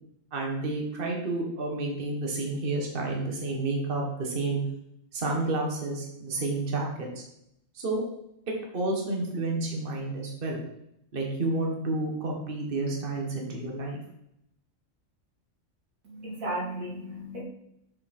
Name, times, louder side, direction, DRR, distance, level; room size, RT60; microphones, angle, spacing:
voice 1, 0.3-4.6 5.1-7.2 7.7-8.0 8.5-10.6 11.1-14.0, right 2 dB, 40° right, 0 dB, 1.6 m, -30 dB
voice 2, 16.0-17.4, right 1 dB, 85° right, -4 dB, 3.2 m, -35 dB
7.4 x 6.7 x 4.3 m, 0.77 s
omnidirectional pair, 1.4 m